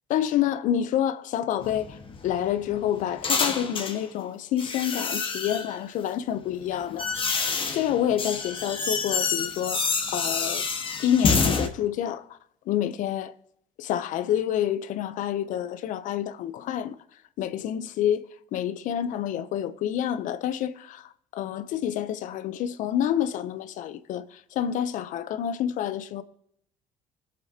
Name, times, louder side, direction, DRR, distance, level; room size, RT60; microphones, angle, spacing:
voice 1, 0.1-2.0 2.2-7.4 7.7-10.7 11.0-12.3 12.7-13.3 13.8-17.0 17.4-26.2, left 10 dB, 70° left, 0.8 m, -28 dB
sound 1, 1.6-4.0 4.6-5.8 6.5-11.7, left 5 dB, 40° left, 1.5 m, -28 dB
20.0 x 7.8 x 2.9 m
supercardioid pair, 75°, 14 cm